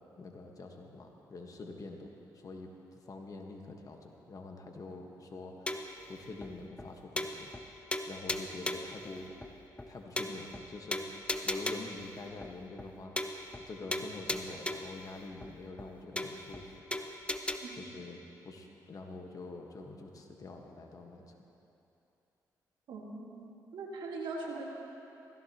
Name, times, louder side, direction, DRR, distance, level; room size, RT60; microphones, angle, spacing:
voice 1, 0.2-2.1 2.3-5.7 6.1-7.5 8.1-9.4 9.9-13.2 13.7-16.7 17.7-21.3, left 3 dB, 45° left, 2 dB, 1.5 m, -46 dB
sound 1, 5.7-6.0 6.4-6.5 6.8-6.9 7.2-7.6 7.9-9.0 9.4-9.5 9.8-9.9 10.2-10.6 10.9-12.0 12.4-12.5 12.8-12.9 13.2-13.6 13.9-15.0 15.4-15.5 15.8-15.9 16.2-16.6 16.9-17.6, left 1 dB, 15° left, 0.8 m, -36 dB
voice 2, 22.9-24.6, right 3 dB, 75° right, -1 dB, 2.0 m, -41 dB
16.5 x 15.0 x 3.0 m, 2.8 s
supercardioid pair, 65°, 8 cm